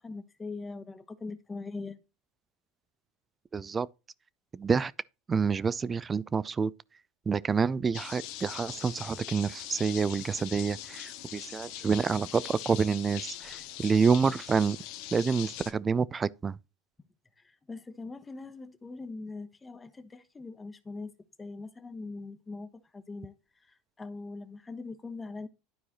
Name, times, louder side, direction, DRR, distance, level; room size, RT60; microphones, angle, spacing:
voice 1, 0.0-2.0 17.4-21.1 21.4-23.3 23.6-25.5, left 3 dB, 20° left, 1.0 m, -42 dB
voice 2, 3.5-3.9 4.5-4.9 5.3-6.7 7.3-14.8 15.1-16.6, right 5 dB, 25° right, 0.4 m, -28 dB
sound 1, 7.9-15.7, left 13 dB, 65° left, 0.8 m, -42 dB
12.0 x 4.7 x 2.9 m
hypercardioid pair, 90°, 0 cm